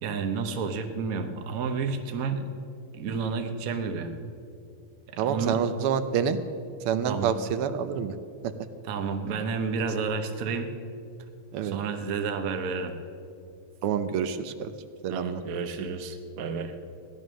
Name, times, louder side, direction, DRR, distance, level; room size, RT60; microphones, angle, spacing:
voice 1, 0.0-2.5 3.0-4.1 5.1-5.6 7.1-7.3 8.8-10.7 11.6-13.0 15.1-16.7, right 5 dB, 50° right, 7 dB, 1.1 m, -31 dB
voice 2, 5.2-6.4 6.9-8.2 8.4-8.5 11.5-11.8 13.8-14.7 15.0-15.4, right 7 dB, 85° right, 10 dB, 1.6 m, -27 dB
16.0 x 11.0 x 6.3 m, 2.5 s
omnidirectional pair, 2.4 m